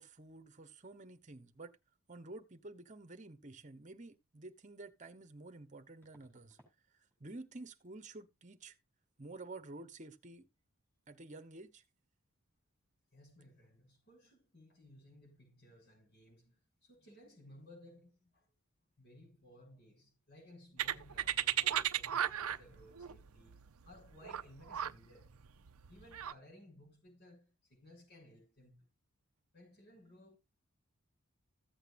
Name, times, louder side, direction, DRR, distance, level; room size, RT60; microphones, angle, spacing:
voice 1, 0.0-1.7 2.1-6.6 7.2-8.8 9.2-10.5 11.1-11.8, right 2 dB, 35° right, 1.1 m, -50 dB
sound 1, 4.5-4.6 6.0-6.8 7.1-7.5 7.7-7.9 10.9-11.0 11.2-11.5 11.7-11.9, right 1 dB, 10° left, 5.1 m, -69 dB
voice 2, 13.1-18.5 19.0-25.4 25.9-28.9 29.5-30.4, left 1 dB, 50° left, 7.0 m, -59 dB
sound 2, 20.8-26.3, right 10 dB, 85° right, 0.6 m, -35 dB
15.0 x 8.0 x 2.6 m
head